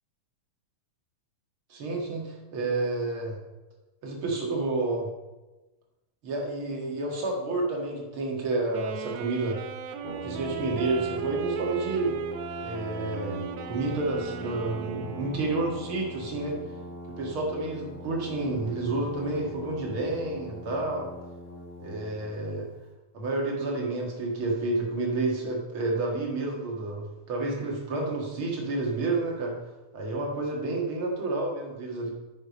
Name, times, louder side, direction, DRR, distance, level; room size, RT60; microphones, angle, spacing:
voice 1, 1.7-3.4 4.0-5.1 6.2-9.6 10.2-12.1 12.6-16.6 17.2-21.0 21.8-22.7 23.1-29.5 29.9-32.1, right 2 dB, 45° right, -1 dB, 2.2 m, -30 dB
Wind instrument woodwind instrument, 8.7-15.6, right 7 dB, 75° right, 1.7 m, -37 dB
Brass instrument, 10.0-22.3, left 1 dB, 40° left, 2.8 m, -42 dB
9.3 x 6.9 x 5.2 m, 1.1 s
omnidirectional pair, 3.9 m